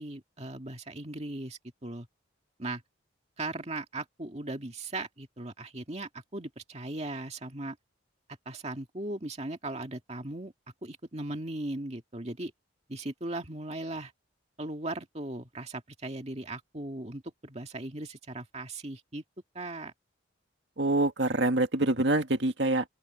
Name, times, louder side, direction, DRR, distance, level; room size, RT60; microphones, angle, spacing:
voice 1, 0.0-2.1 2.6-2.8 3.4-7.8 8.5-10.5 10.8-12.5 12.9-14.1 14.6-19.2 19.5-19.9, right 2 dB, 35° right, 2.1 m, -38 dB
voice 2, 20.8-22.8, right 2 dB, 60° right, 2.1 m, -25 dB
open air
head